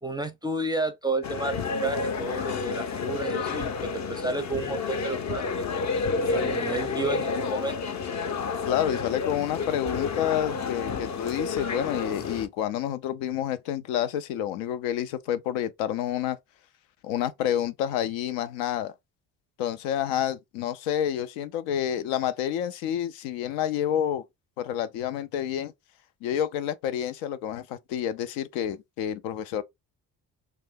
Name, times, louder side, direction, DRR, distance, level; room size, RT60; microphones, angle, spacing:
voice 1, 0.0-5.7 6.3-7.8, right 2 dB, 10° right, 0.5 m, -31 dB
sound 1, 1.2-12.5, left 4 dB, 40° left, 0.6 m, -30 dB
voice 2, 8.7-16.4 17.0-18.9 19.6-24.2 24.6-25.7 26.2-29.6, left 10 dB, 75° left, 0.5 m, -29 dB
2.5 x 2.2 x 3.5 m
hypercardioid pair, 45°, 46 cm